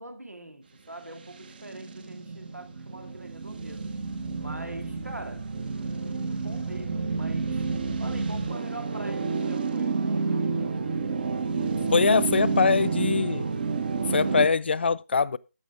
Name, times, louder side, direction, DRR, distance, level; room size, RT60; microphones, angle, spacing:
voice 1, 0.0-4.0 4.4-5.5 6.0-7.7 8.0-10.6, right 1 dB, 90° right, 2.1 m, -43 dB
sound 1, 1.2-14.5, right 4 dB, 40° right, 1.1 m, -30 dB
voice 2, 11.9-13.4 14.1-15.4, left 5 dB, 45° left, 0.4 m, -23 dB
14.0 x 5.1 x 3.7 m
figure-of-eight pair, 155°, 8 cm